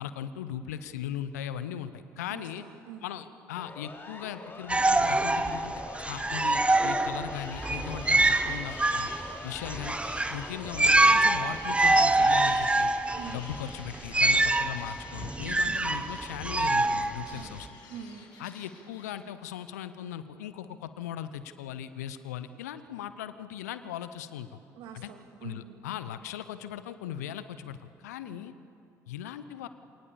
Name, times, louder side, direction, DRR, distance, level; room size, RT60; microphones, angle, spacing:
voice 1, 0.0-2.6 3.0-9.1 9.4-10.0 10.3-12.9 13.3-17.8 18.4-24.6 24.9-25.1 25.4-28.5 29.1-29.7, left 10 dB, 75° left, 13 dB, 0.8 m, -38 dB
voice 2, 2.3-3.0 13.1-13.4 15.6-15.9 17.3-17.6 17.9-18.3 24.8-25.8 28.2-28.5, right 8 dB, 60° right, 5 dB, 2.4 m, -45 dB
Siren, 3.6-11.5, left 3 dB, 25° left, 2.9 m, -45 dB
sound 1, 4.7-17.7, right 2 dB, 15° right, 1.0 m, -25 dB
sound 2, 7.3-19.1, left 4 dB, 50° left, 6.0 m, -49 dB
27.0 x 18.5 x 7.1 m, 2.7 s
figure-of-eight pair, 55°, 9 cm